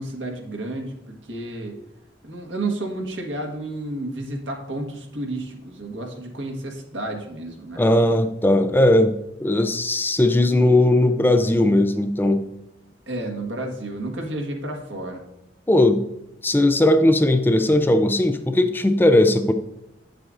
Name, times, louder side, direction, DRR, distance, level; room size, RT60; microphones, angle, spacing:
voice 1, 0.0-1.7 2.2-7.8 13.1-15.2, right 2 dB, 80° right, 1 dB, 1.5 m, -31 dB
voice 2, 7.8-9.1 9.4-12.5 15.7-16.0 16.4-19.5, left 1 dB, 10° left, 7 dB, 0.4 m, -18 dB
8.5 x 7.6 x 2.5 m, 0.86 s
head